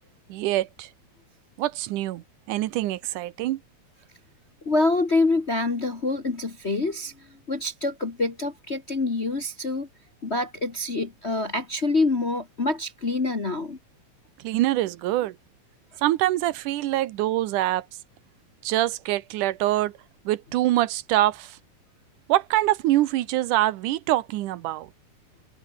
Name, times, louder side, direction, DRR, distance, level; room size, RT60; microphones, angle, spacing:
voice 1, 0.3-0.9 1.6-3.6 14.4-15.4 16.0-17.9 18.6-19.9 20.3-21.6 22.3-24.9, right 15 dB, 80° right, 2.4 m, -24 dB
voice 2, 4.6-7.1 7.5-9.9 10.2-13.8, left 3 dB, 35° left, 1.1 m, -26 dB
omnidirectional pair, 3.6 m